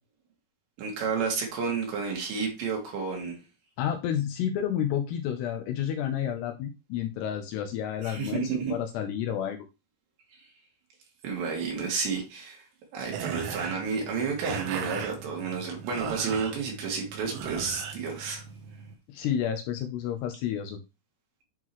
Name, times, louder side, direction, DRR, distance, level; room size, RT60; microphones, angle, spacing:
voice 1, 0.8-3.4 8.0-8.7 11.2-12.7 12.9-18.4, right 5 dB, 70° right, 4.2 m, -31 dB
voice 2, 3.8-9.6 19.1-20.8, left 9 dB, 80° left, 2.6 m, -30 dB
sound 1, 13.1-19.0, right 7 dB, 90° right, 3.5 m, -38 dB
10.5 x 3.8 x 3.0 m
omnidirectional pair, 5.3 m